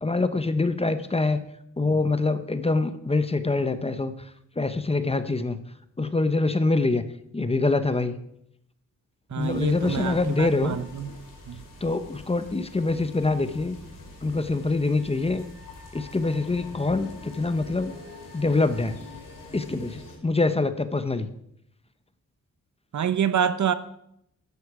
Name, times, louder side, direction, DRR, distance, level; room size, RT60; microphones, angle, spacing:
voice 1, 0.0-1.4 1.8-4.1 4.6-5.6 6.0-7.0 7.3-8.2 9.4-10.8 11.8-13.7 14.2-15.5 15.9-17.9 18.3-19.0 19.5-21.3, left 3 dB, 20° left, 11 dB, 0.8 m, -25 dB
voice 2, 9.3-11.1 11.5-11.6 22.9-23.7, right 8 dB, 65° right, 12 dB, 0.8 m, -27 dB
sound 1, 9.4-20.2, left 3 dB, 85° left, 3.2 m, -43 dB
13.5 x 9.7 x 4.8 m, 0.74 s
wide cardioid pair, 105°, 31 cm